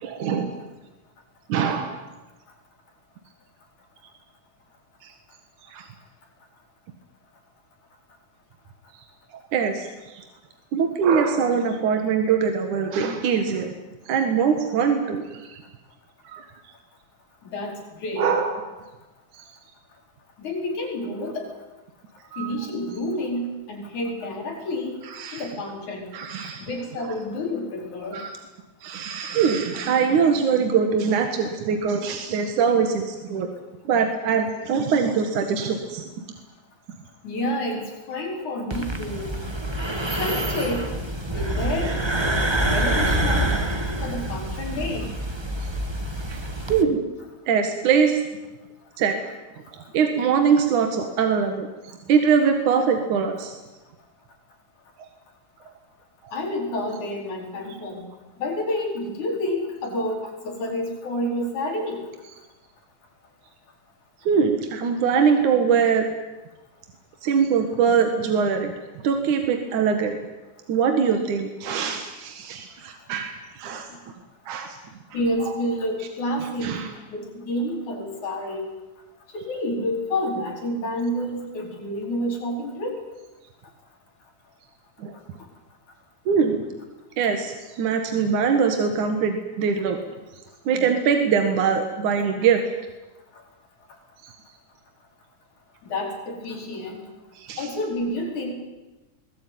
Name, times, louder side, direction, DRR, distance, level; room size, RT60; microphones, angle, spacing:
voice 1, 0.0-0.5 1.5-2.0 5.0-5.1 5.7-5.9 9.5-10.2 10.7-13.7 14.1-15.6 16.2-16.4 18.2-18.7 19.3-19.5 22.3-22.5 25.2-25.5 26.1-26.7 28.1-28.4 28.8-33.5 33.9-36.1 41.9-42.0 46.3-46.4 46.7-47.0 47.5-48.2 49.0-49.2 49.9-51.7 52.1-53.6 64.3-66.0 67.2-68.7 69.0-70.2 70.7-73.9 74.5-74.8 76.6-76.9 85.0-85.1 86.3-86.6 87.2-90.0 90.7-92.6 94.2-94.3 97.4-97.7, right 6 dB, 75° right, 5 dB, 3.2 m, -22 dB
voice 2, 17.4-18.3 20.4-21.5 22.4-25.0 25.3-26.1 26.6-28.2 37.2-39.4 40.2-40.9 41.3-42.0 42.6-43.7 44.0-45.1 56.3-58.1 58.4-62.0 73.9-74.0 75.1-78.7 79.3-83.0 95.8-97.0 97.6-98.5, left 1 dB, 70° left, 1 dB, 5.7 m, -29 dB
sound 1, 38.7-46.8, right 1 dB, 20° right, 0.7 m, -26 dB
22.5 x 18.5 x 9.5 m, 1.1 s
omnidirectional pair, 3.5 m